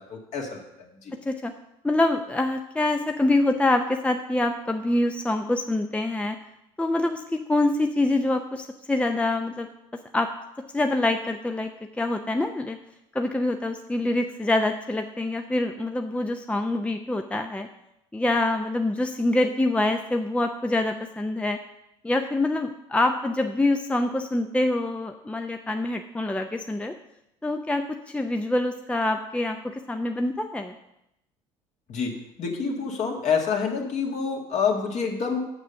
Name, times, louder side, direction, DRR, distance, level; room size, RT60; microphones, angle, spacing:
voice 1, 0.0-1.1 31.9-35.5, left 5 dB, 50° left, 1 dB, 2.0 m, -28 dB
voice 2, 1.8-6.4 6.8-9.7 10.1-10.3 10.7-11.7 12.0-12.8 13.1-17.7 18.1-21.6 22.0-26.9 27.4-30.7, left 2 dB, 10° left, 5 dB, 0.6 m, -25 dB
6.8 x 6.2 x 6.6 m, 0.84 s
hypercardioid pair, 60°, 15 cm